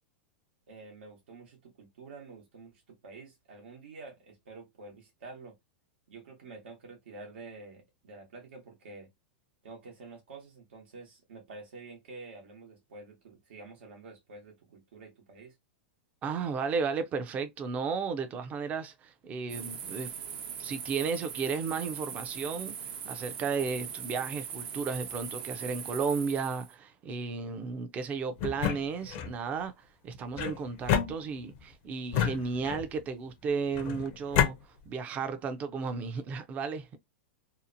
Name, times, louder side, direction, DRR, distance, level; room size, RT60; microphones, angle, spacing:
voice 1, 0.7-5.6 6.1-9.1 9.6-15.5, right 3 dB, 85° right, 1.1 m, -48 dB
voice 2, 16.2-20.1 20.6-36.9, right 5 dB, 25° right, 0.5 m, -34 dB
sound 1, 19.5-26.7, right 8 dB, 60° right, 0.7 m, -40 dB
sound 2, 28.4-29.4 30.4-31.6 32.1-33.0 33.8-34.5, left 9 dB, 45° left, 0.5 m, -30 dB
2.8 x 2.1 x 2.5 m
supercardioid pair, 145°, 6 cm